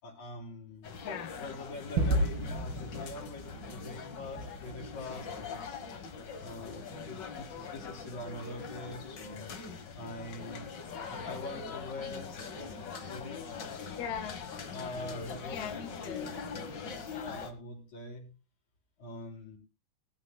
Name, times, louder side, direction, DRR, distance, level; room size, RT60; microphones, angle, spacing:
voice 1, 0.0-1.0 1.4-5.8 6.4-9.5 10.0-10.6 11.1-14.1 14.5-18.3 19.0-19.6, left 2 dB, 50° left, 0 dB, 4.8 m, -44 dB
sound 1, 0.8-17.5, left 5 dB, 70° left, 1.0 m, -43 dB
voice 2, 1.0-1.4 14.0-14.4 15.5-16.3, left 8 dB, 90° left, 7 dB, 3.1 m, -39 dB
Gunshot gunfire / Fireworks / Boom, 2.0-6.8, right 1 dB, 80° right, 5.1 m, -35 dB
19.5 x 13.5 x 2.3 m, 0.30 s
omnidirectional pair, 4.3 m